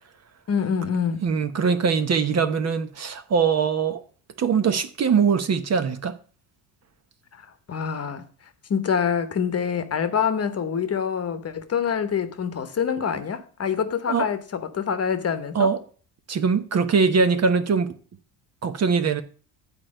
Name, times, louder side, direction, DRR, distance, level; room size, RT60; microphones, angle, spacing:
voice 1, 0.5-1.2 7.4-8.2 8.7-15.7, left 7 dB, 35° left, 1.1 m, -26 dB
voice 2, 1.2-4.0 4.4-6.2 14.1-14.3 15.5-15.8 16.3-17.9 18.6-19.2, right 5 dB, 40° right, 0.9 m, -22 dB
8.7 x 4.7 x 6.4 m
supercardioid pair, 90°, 41 cm